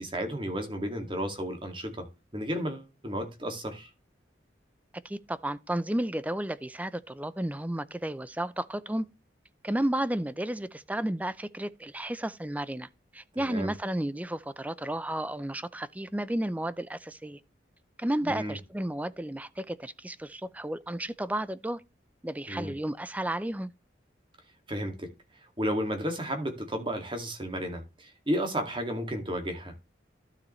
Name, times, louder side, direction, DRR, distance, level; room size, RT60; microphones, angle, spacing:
voice 1, 0.0-2.1 2.3-3.9 13.4-13.7 18.2-18.6 22.5-22.7 24.7-25.1 25.6-29.7, equal, 25° right, 2.2 m, -33 dB
voice 2, 5.0-9.1 9.6-17.4 18.0-21.8 22.2-23.7, right 1 dB, 10° right, 0.5 m, -32 dB
12.5 x 7.0 x 3.2 m
head